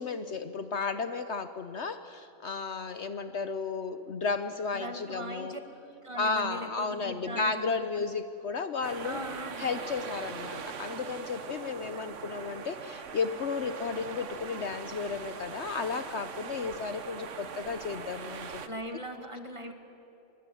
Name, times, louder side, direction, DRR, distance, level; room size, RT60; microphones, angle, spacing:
voice 1, 0.0-5.5 6.2-9.2 9.6-18.6, left 4 dB, 55° left, 10 dB, 1.1 m, -33 dB
voice 2, 4.7-5.6 6.0-8.0 9.0-9.7 18.7-19.7, equal, 20° right, 5 dB, 2.0 m, -40 dB
sound 1, 8.8-18.7, right 6 dB, 60° right, 1.4 m, -41 dB
24.0 x 23.0 x 9.2 m, 2.9 s
omnidirectional pair, 1.4 m